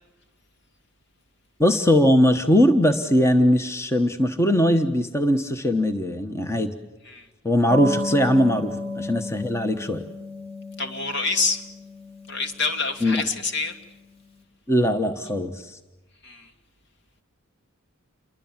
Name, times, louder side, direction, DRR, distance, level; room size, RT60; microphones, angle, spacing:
voice 1, 1.6-6.7 7.4-10.0 13.0-13.2 14.7-15.8, equal, 15° left, 7 dB, 1.2 m, -20 dB
sound 1, 7.7-13.9, left 1 dB, 30° left, 2.9 m, -34 dB
voice 2, 10.8-11.6 12.3-13.7 16.2-16.4, left 3 dB, 55° left, 6 dB, 2.7 m, -26 dB
29.0 x 23.5 x 7.4 m, 1.1 s
head